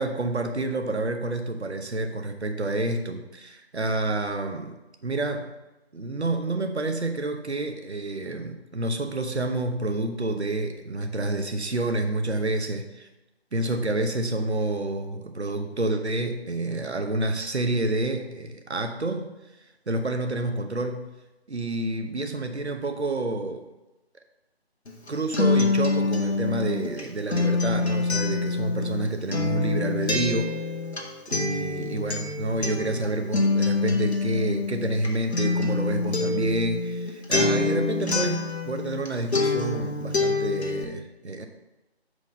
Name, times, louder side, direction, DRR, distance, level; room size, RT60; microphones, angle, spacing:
voice 1, 0.0-5.5 5.9-13.1 13.5-19.3 19.9-21.1 21.5-23.7 25.1-30.5 31.3-41.5, right 2 dB, 85° right, 5 dB, 1.0 m, -28 dB
Acoustic guitar, 24.9-39.1 39.3-40.8, left 3 dB, 85° left, 1.5 m, -26 dB
5.8 x 4.9 x 5.3 m, 1.0 s
figure-of-eight pair, 160°, 32 cm